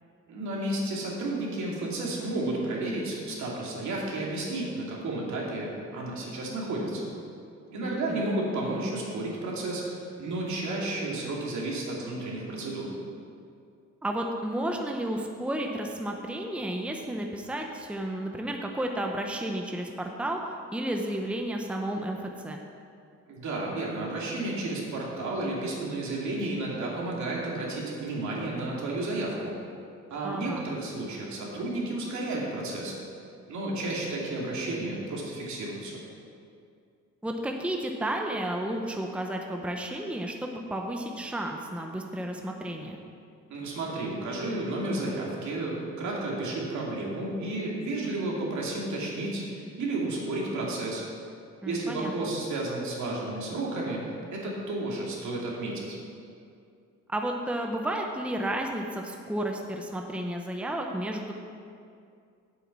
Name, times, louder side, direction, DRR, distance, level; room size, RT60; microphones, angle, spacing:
voice 1, 0.3-7.0 7.7-12.9 23.3-29.5 30.1-32.9 33.5-36.0 43.5-51.0 51.6-54.0 54.3-56.0, right 2 dB, 70° right, -3 dB, 2.6 m, -32 dB
voice 2, 7.8-8.2 14.0-20.4 20.7-22.6 30.2-30.6 37.2-43.0 51.6-52.3 57.1-61.3, right 1 dB, 5° right, 2 dB, 0.8 m, -32 dB
8.2 x 7.9 x 6.0 m, 2.4 s
cardioid pair, 90°, 30 cm